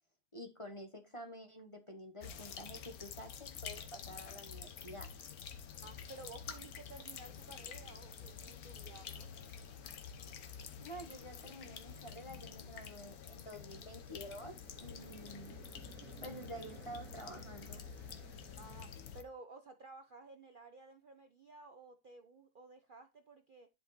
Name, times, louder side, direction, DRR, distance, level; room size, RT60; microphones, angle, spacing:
voice 1, 0.3-5.1 10.8-15.5 16.2-17.8, equal, 25° left, 0.8 m, -49 dB
sound 1, 2.2-19.2, left 7 dB, 60° left, 1.3 m, -49 dB
voice 2, 5.8-9.3 18.6-23.7, right 3 dB, 80° right, 0.4 m, -54 dB
sound 2, 8.1-18.9, right 5 dB, 50° right, 1.4 m, -60 dB
10.5 x 4.8 x 4.1 m
omnidirectional pair, 1.9 m